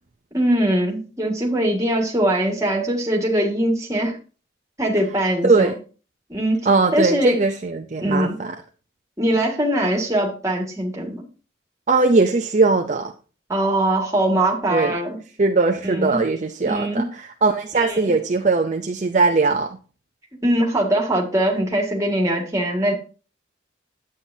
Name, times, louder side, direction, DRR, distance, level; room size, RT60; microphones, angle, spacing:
voice 1, 0.3-4.2 4.8-5.7 6.3-7.4 8.0-8.4 9.2-11.2 13.5-15.2 15.8-16.2 16.7-17.1 17.8-18.2 20.4-22.9, right 1 dB, 15° right, 1 dB, 1.9 m, -22 dB
voice 2, 5.4-5.7 6.7-8.5 11.9-13.1 14.7-15.0 15.4-17.0 17.4-19.8, right 3 dB, 40° right, 5 dB, 0.5 m, -19 dB
9.8 x 8.7 x 2.7 m, 0.36 s
head